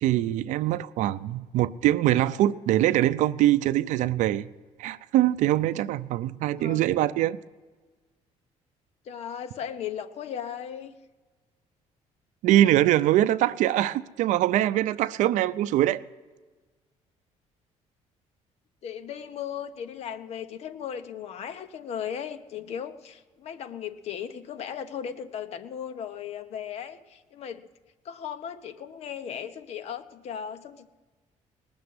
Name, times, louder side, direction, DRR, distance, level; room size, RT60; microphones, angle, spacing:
voice 1, 0.0-4.5 4.8-7.4 12.4-16.0, right 13 dB, 85° right, 0.5 m, -23 dB
voice 2, 9.0-10.9 18.8-27.7 28.0-30.9, left 8 dB, 55° left, 1.0 m, -37 dB
20.0 x 7.0 x 9.6 m
cardioid pair, 150°, 13 cm